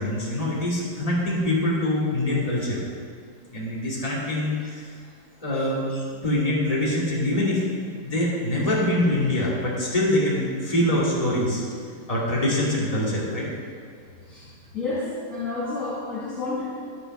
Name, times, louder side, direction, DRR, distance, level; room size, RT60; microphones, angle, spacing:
voice 1, 0.0-2.8 3.5-4.9 5.4-11.6 12.1-13.5, left 1 dB, 20° left, -6 dB, 2.6 m, -24 dB
voice 2, 14.2-16.7, left 3 dB, 45° left, -7 dB, 2.1 m, -30 dB
10.5 x 8.9 x 6.1 m, 2.2 s
omnidirectional pair, 2.1 m